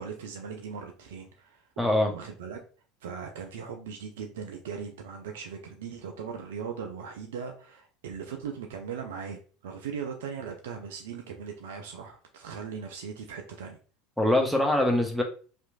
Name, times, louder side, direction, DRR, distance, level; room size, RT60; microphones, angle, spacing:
voice 1, 0.0-1.6 2.1-2.6 3.0-13.8, right 6 dB, 70° right, 3 dB, 0.3 m, -39 dB
voice 2, 1.8-2.1 14.2-15.2, left 1 dB, ahead, 2 dB, 0.7 m, -23 dB
2.9 x 2.5 x 2.3 m, 0.39 s
hypercardioid pair, 75°, 0 cm